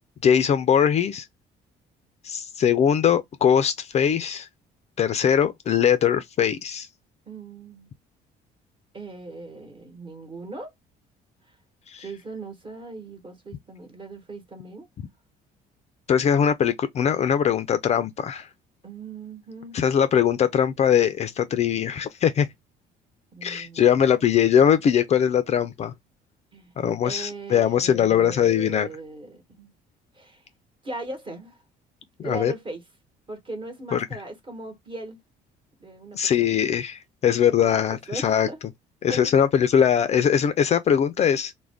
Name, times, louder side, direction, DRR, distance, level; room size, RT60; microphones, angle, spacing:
voice 1, 0.2-1.3 2.2-4.5 5.0-6.9 11.9-12.1 16.1-18.5 19.7-22.5 23.4-25.9 26.8-28.9 32.2-32.5 33.9-34.1 36.1-38.5 39.0-41.5, left 8 dB, 40° left, 0.4 m, -21 dB
voice 2, 7.3-7.9 8.9-10.7 11.5-11.6 12.0-14.9 18.8-19.8 23.3-24.3 26.5-26.7 27.0-29.7 30.1-30.4 30.8-31.6 32.2-32.8 33.3-35.2 35.8-36.6 37.6-38.6 39.1-39.3, right 2 dB, 30° right, 1.1 m, -39 dB
2.4 x 2.1 x 3.3 m
cardioid pair, 110°, 17 cm